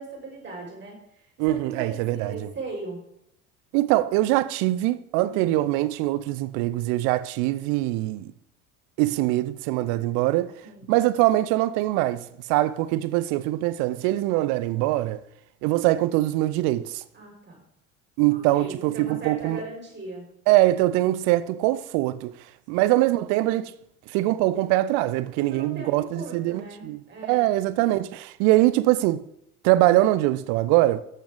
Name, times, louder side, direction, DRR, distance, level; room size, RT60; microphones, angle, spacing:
voice 1, 0.0-3.0 5.3-5.5 10.6-10.9 17.1-17.6 18.3-20.2 22.7-22.9 25.4-27.5, right 2 dB, 25° right, 5.0 m, -39 dB
voice 2, 1.4-2.5 3.7-8.3 9.0-10.5 10.9-15.2 15.6-17.0 18.2-19.6 20.5-22.3 22.7-23.7 24.1-27.0 27.3-29.2 29.6-31.0, right 16 dB, 45° right, 0.6 m, -23 dB
13.0 x 7.8 x 3.9 m
figure-of-eight pair, 70°, 44 cm